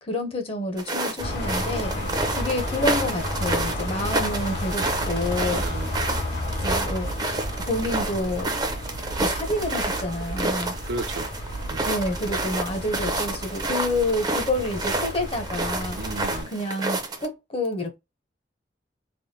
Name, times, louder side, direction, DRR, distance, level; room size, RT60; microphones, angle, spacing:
voice 1, 0.0-1.9 2.3-5.6 6.6-7.1 7.6-8.5 9.2-10.7 11.9-16.0 16.5-18.0, left 1 dB, 35° left, 0.7 m, -28 dB
sound 1, 0.8-17.3, right 2 dB, 25° right, 0.6 m, -29 dB
sound 2, 1.2-16.4, left 1 dB, 80° left, 1.6 m, -32 dB
voice 2, 1.9-2.4 5.5-5.9 10.9-11.3 11.7-11.9 15.9-16.5, right 3 dB, 80° right, 0.5 m, -35 dB
3.4 x 2.2 x 2.7 m
head